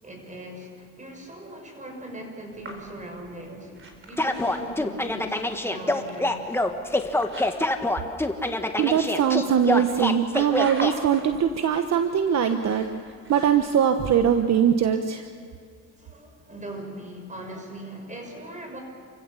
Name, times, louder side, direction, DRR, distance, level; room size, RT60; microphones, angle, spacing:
voice 1, 0.0-6.5 16.0-18.8, right 1 dB, 25° right, 3 dB, 6.3 m, -40 dB
sound 1, 2.5-14.0, right 2 dB, 45° right, 4.4 m, -44 dB
sound 2, 4.2-10.9, left 1 dB, 10° left, 1.5 m, -25 dB
voice 2, 8.8-12.9 13.3-15.2, right 8 dB, 60° right, 7 dB, 1.2 m, -22 dB
29.0 x 16.0 x 7.2 m, 2.2 s
cardioid pair, 90°, 30 cm